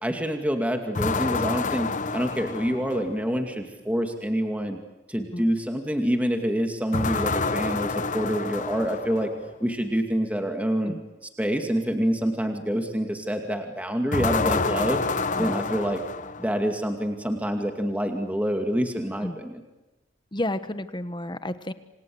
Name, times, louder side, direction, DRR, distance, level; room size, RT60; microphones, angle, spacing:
voice 1, 0.0-4.8 5.1-9.3 9.6-10.9 11.4-15.0 15.4-16.0 16.4-19.6, equal, 10° right, 4 dB, 2.4 m, -27 dB
sound 1, 1.0-3.3 6.9-9.4 14.1-16.7, left 4 dB, 40° left, 1.0 m, -28 dB
voice 2, 20.3-21.7, left 1 dB, 25° left, 11 dB, 1.3 m, -31 dB
28.0 x 27.0 x 7.9 m, 1.1 s
head